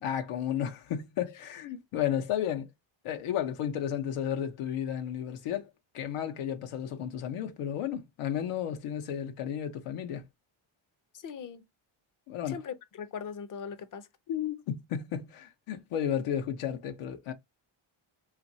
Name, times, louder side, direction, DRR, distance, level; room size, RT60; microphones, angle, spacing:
voice 1, 0.0-2.7 3.0-5.7 5.9-10.2 12.3-12.6 14.3-17.3, left 9 dB, 90° left, 0.7 m, -33 dB
voice 2, 11.1-11.6 12.5-14.1, left 7 dB, 40° left, 0.5 m, -40 dB
3.0 x 2.4 x 2.6 m
cardioid pair, 125°, 50 cm